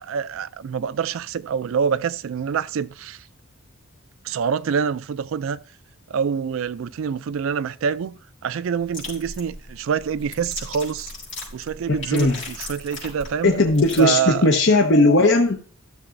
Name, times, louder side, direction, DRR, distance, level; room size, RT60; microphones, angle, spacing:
voice 1, 0.0-3.3 4.2-5.6 6.1-11.1 11.5-13.6 14.0-14.4, right 7 dB, 60° right, 0.3 m, -26 dB
sound 1, 8.8-14.0, left 2 dB, 35° left, 4.9 m, -37 dB
voice 2, 13.4-15.6, left 2 dB, 55° left, 0.9 m, -17 dB
13.0 x 6.7 x 2.6 m
head